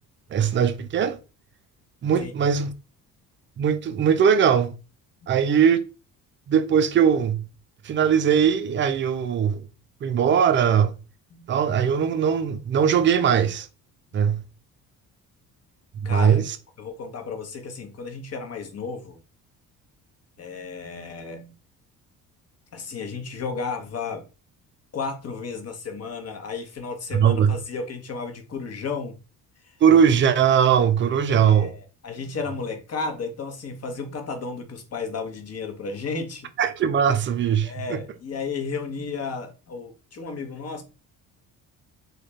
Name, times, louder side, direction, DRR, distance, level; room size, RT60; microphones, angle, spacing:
voice 1, 0.3-1.2 2.0-2.7 3.6-4.7 5.3-5.8 6.5-7.4 7.8-9.6 10.0-10.9 11.5-13.7 14.1-14.4 16.1-16.4 27.1-27.5 29.8-31.7 36.6-38.0, right 8 dB, 25° right, 0.4 m, -20 dB
voice 2, 16.0-16.4 16.8-19.2 20.4-21.5 22.7-24.2 24.9-29.2 29.6-29.8 31.3-36.5 37.6-40.8, left 4 dB, 30° left, 0.9 m, -33 dB
3.7 x 2.3 x 3.3 m
figure-of-eight pair, 45°, 49 cm